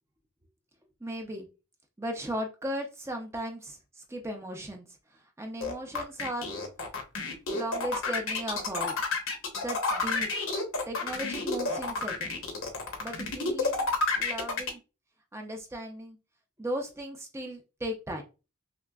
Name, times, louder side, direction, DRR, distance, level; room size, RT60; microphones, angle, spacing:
voice 1, 1.0-1.5 2.0-4.8 5.1-6.5 7.5-9.0 9.5-10.3 10.9-12.4 13.0-13.9 14.2-14.8 15.3-16.2 16.6-18.2, equal, 10° right, 3 dB, 0.5 m, -36 dB
sound 1, 5.6-14.7, left 3 dB, 65° left, 0.9 m, -30 dB
5.8 x 2.1 x 2.3 m, 0.30 s
head